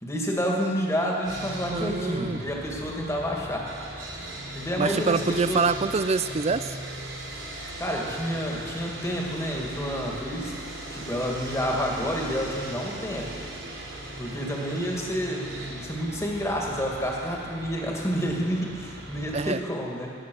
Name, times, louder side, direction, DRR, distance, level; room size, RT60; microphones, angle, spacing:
voice 1, 0.0-3.7 4.5-5.6 7.8-10.5 10.9-13.3 14.2-20.1, equal, 15° left, -1 dB, 2.1 m, -29 dB
Sawing, 1.2-19.5, right 1 dB, 80° right, 4.0 m, -38 dB
voice 2, 1.7-2.4 4.8-6.8 19.3-19.6, right 4 dB, 35° right, 13 dB, 0.4 m, -25 dB
17.0 x 10.5 x 6.3 m, 2.3 s
head